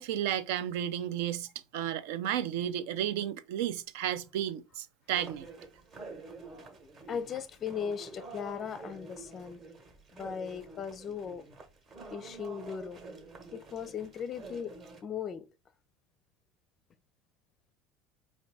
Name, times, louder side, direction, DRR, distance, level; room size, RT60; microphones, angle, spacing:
voice 1, 0.0-5.5, right 11 dB, 75° right, 0.5 m, -33 dB
sound 1, 5.1-15.0, right 3 dB, 30° right, 1.0 m, -48 dB
voice 2, 7.1-9.6 10.1-11.4 12.1-13.0 13.5-14.7 15.0-15.5, left 7 dB, 30° left, 0.5 m, -38 dB
5.1 x 2.6 x 3.4 m
supercardioid pair, 150°, 0 cm